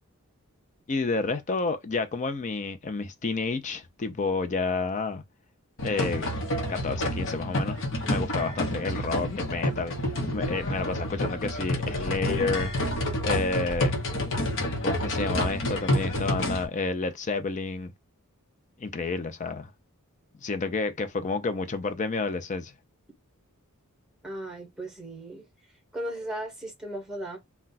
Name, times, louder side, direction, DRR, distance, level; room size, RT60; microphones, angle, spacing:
voice 1, 0.9-5.2 5.8-6.3 6.7-7.8 8.0-9.9 10.3-12.7 13.2-13.9 14.8-17.9 18.8-19.7 20.4-22.7, left 3 dB, 35° left, 0.5 m, -30 dB
sound 1, 5.8-16.7, left 1 dB, 60° left, 0.9 m, -29 dB
voice 2, 10.5-10.9 24.2-25.4 25.9-27.4, right 1 dB, 5° right, 1.1 m, -37 dB
2.3 x 2.2 x 3.9 m
head